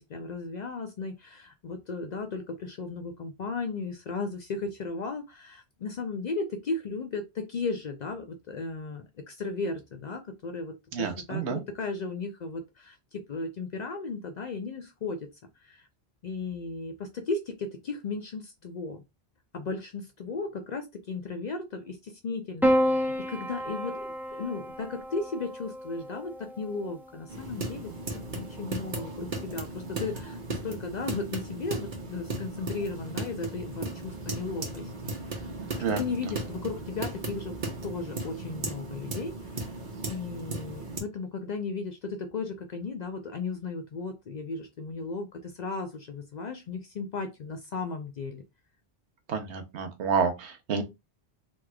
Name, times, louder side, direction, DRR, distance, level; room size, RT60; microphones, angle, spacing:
voice 1, 0.0-15.3 15.6-15.9 16.2-19.0 19.5-34.9 35.2-35.5 35.7-37.6 37.8-39.8 40.1-48.4, left 3 dB, 55° left, 0.5 m, -35 dB
voice 2, 10.9-11.6 35.8-36.0 49.3-50.8, right 6 dB, 85° right, 1.1 m, -29 dB
Piano, 22.6-27.1 28.3-29.0, equal, 5° right, 0.4 m, -30 dB
sound 1, 27.3-41.0, right 2 dB, 50° right, 0.9 m, -36 dB
3.4 x 3.1 x 2.2 m
omnidirectional pair, 1.1 m